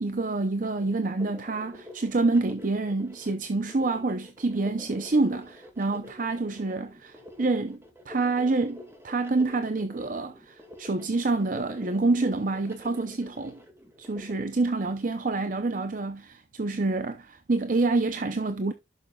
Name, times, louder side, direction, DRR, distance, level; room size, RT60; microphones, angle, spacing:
voice 1, 0.0-7.8 8.1-13.6 14.0-18.7, right 3 dB, 50° right, 0.7 m, -27 dB
sound 1, 0.6-14.3, left 1 dB, 15° right, 2.0 m, -47 dB
11.5 x 6.5 x 2.3 m
head